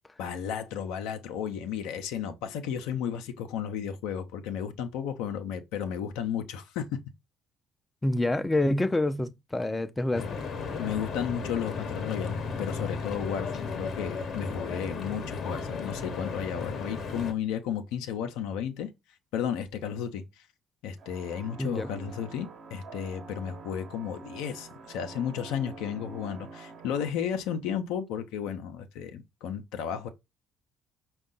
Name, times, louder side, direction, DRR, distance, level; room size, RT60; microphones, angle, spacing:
voice 1, 0.2-7.0 10.7-18.9 19.3-20.2 20.8-30.1, left 8 dB, 70° left, 0.6 m, -33 dB
voice 2, 8.0-10.3 10.7-10.8 21.6-21.9, left 2 dB, 15° left, 0.5 m, -27 dB
Stream / Boat Water vehicle, 10.1-17.3, left 5 dB, 50° left, 0.9 m, -35 dB
sound 1, 21.0-27.1, right 3 dB, 55° right, 1.1 m, -46 dB
5.3 x 2.3 x 3.7 m
hypercardioid pair, 50°, 0 cm